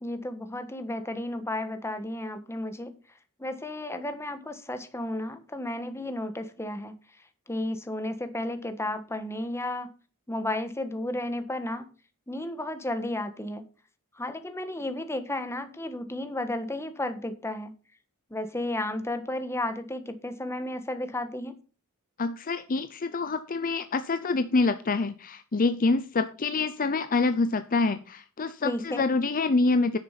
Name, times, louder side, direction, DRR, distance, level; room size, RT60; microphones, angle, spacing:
voice 1, 0.0-3.0 3.4-6.9 7.5-9.9 10.3-11.9 12.3-13.7 14.1-17.7 18.3-21.5 28.6-29.0, left 1 dB, 10° left, 1.4 m, -33 dB
voice 2, 22.2-30.0, left 3 dB, 40° left, 0.6 m, -26 dB
10.5 x 6.7 x 5.8 m
head